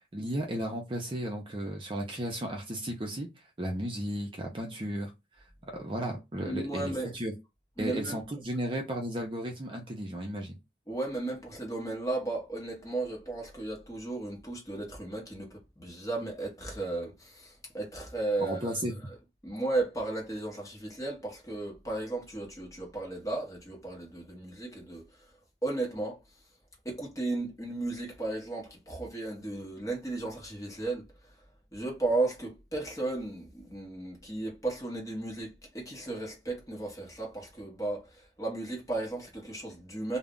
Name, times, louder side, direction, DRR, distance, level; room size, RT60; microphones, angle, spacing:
voice 1, 0.1-3.3 3.6-5.1 5.7-7.3 7.8-10.6 18.4-19.0, right 1 dB, 30° right, 0.5 m, -34 dB
voice 2, 6.4-7.1 7.8-8.2 10.9-18.7 19.4-25.1 25.6-26.2 26.8-31.1 31.7-40.2, right 2 dB, 20° left, 0.9 m, -35 dB
2.3 x 2.0 x 3.6 m
head